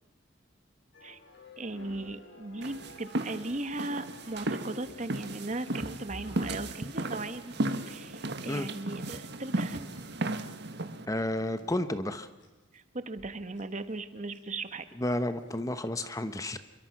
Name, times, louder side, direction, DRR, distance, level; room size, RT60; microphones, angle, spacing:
sound 1, 0.9-11.8 12.4-12.5 13.2-13.3 13.6-13.7 13.9-14.4 14.7-15.1 15.5-15.7, left 1 dB, 60° left, 5.2 m, -52 dB
voice 1, 1.6-7.5 7.9-9.9 12.7-14.9, right 2 dB, 35° right, 11 dB, 1.3 m, -37 dB
sound 2, 2.6-11.1, right 1 dB, 55° right, 1.6 m, -35 dB
voice 2, 11.1-12.3 15.0-16.6, left 1 dB, 15° left, 11 dB, 1.0 m, -31 dB
28.0 x 23.0 x 6.0 m, 1.2 s
head